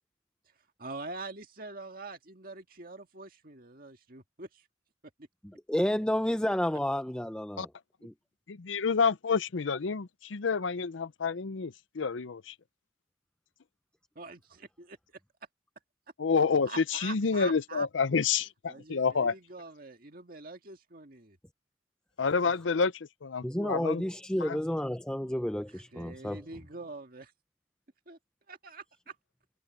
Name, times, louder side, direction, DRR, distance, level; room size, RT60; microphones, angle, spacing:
voice 1, 0.8-4.7 14.2-15.2 16.4-17.9 18.7-21.4 22.4-22.5 25.7-27.3 28.1-28.2 28.5-29.2, right 3 dB, 50° right, 2.0 m, -45 dB
voice 2, 5.7-7.7 8.0-8.1 23.4-26.4, left 1 dB, 5° left, 0.5 m, -30 dB
voice 3, 8.5-12.5 16.2-19.3 22.2-22.9 23.2-24.0 24.4-24.6, left 5 dB, 90° left, 0.6 m, -28 dB
head